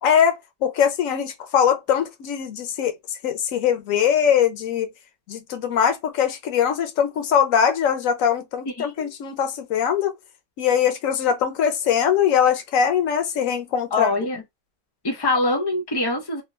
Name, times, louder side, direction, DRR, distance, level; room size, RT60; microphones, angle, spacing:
voice 1, 0.0-2.9 3.2-4.9 5.3-10.1 10.6-14.1, left 8 dB, 85° left, 1.0 m, -21 dB
voice 2, 8.8-9.1 13.9-14.4 15.0-16.4, left 2 dB, 20° left, 0.8 m, -24 dB
3.1 x 2.1 x 2.4 m
omnidirectional pair, 1.3 m